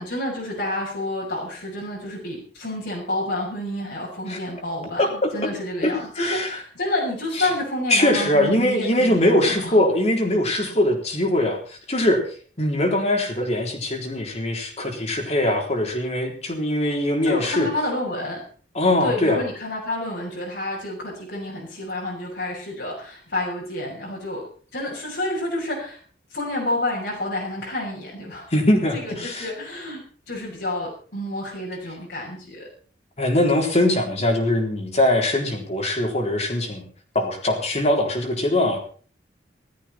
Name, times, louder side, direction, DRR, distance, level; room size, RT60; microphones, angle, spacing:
voice 1, 0.0-9.8 17.2-18.4 19.0-24.4 24.7-26.0 26.3-28.5 28.9-30.0 30.3-32.7, left 1 dB, 70° left, -5 dB, 6.1 m, -29 dB
voice 2, 5.0-5.5 5.8-6.6 7.4-7.5 7.9-12.2 12.6-17.7 18.7-19.4 28.5-29.5 33.2-36.9 37.1-38.8, left 1 dB, 40° left, 2 dB, 3.9 m, -22 dB
17.0 x 13.5 x 4.4 m, 0.42 s
head